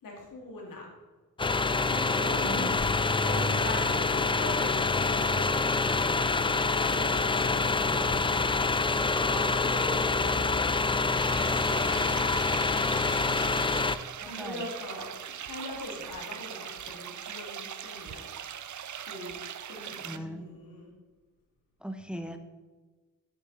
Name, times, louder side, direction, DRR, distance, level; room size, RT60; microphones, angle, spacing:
voice 1, 0.0-0.9 1.8-5.7 6.5-8.5 8.9-11.3 14.2-18.3 19.0-19.4 19.6-20.0 20.4-20.9, left 1 dB, 90° left, -1 dB, 2.7 m, -41 dB
sound 1, 1.4-14.0, left 3 dB, 15° left, 0.4 m, -26 dB
voice 2, 2.3-3.0 14.2-14.7 20.0-20.4 21.8-22.4, equal, 5° right, 7 dB, 0.8 m, -39 dB
sound 2, 11.1-20.2, right 9 dB, 60° right, 0.6 m, -41 dB
9.1 x 8.6 x 4.1 m, 1.3 s
cardioid pair, 80°, 33 cm